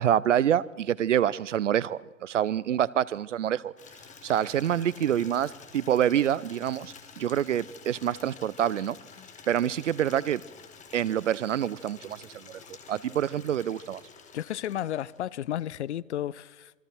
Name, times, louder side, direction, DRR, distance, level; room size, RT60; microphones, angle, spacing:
voice 1, 0.0-3.7 4.2-9.0 9.5-10.4 10.9-12.6 12.9-14.0, right 10 dB, 70° right, 0.8 m, -26 dB
Water tap faucet / Liquid, 3.8-15.4, left 6 dB, 20° left, 2.5 m, -50 dB
voice 2, 14.3-16.7, left 11 dB, 60° left, 0.7 m, -33 dB
27.5 x 24.0 x 4.6 m
figure-of-eight pair, 105°, 38 cm